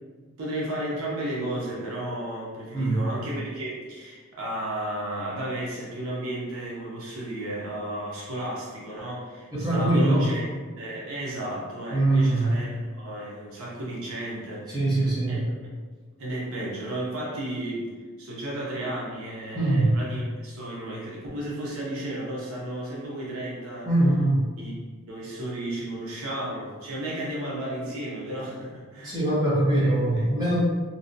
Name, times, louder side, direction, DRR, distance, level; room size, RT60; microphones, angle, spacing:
voice 1, 0.4-10.4 10.8-12.7 12.9-15.4 16.2-17.9 18.2-23.9 24.6-24.7 25.1-29.3 29.7-29.9 30.2-30.4, right 1 dB, 80° right, -5 dB, 0.6 m, -33 dB
voice 2, 2.7-3.1 9.5-10.4 11.9-12.5 14.7-15.4 19.5-20.0 23.8-24.5 29.0-30.6, right 1 dB, 20° right, -8 dB, 0.7 m, -22 dB
2.7 x 2.1 x 2.5 m, 1.5 s
head